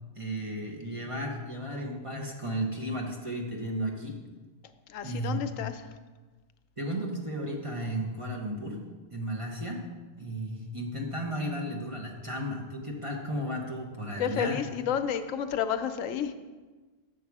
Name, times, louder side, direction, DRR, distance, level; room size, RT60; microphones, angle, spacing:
voice 1, 0.2-4.2 5.0-5.4 6.8-8.8 9.1-9.8 10.2-14.6, right 1 dB, 30° right, -1 dB, 0.9 m, -34 dB
voice 2, 4.9-5.9 14.2-16.3, left 8 dB, 85° left, 9 dB, 1.0 m, -31 dB
7.2 x 6.7 x 4.7 m, 1.3 s
omnidirectional pair, 1.3 m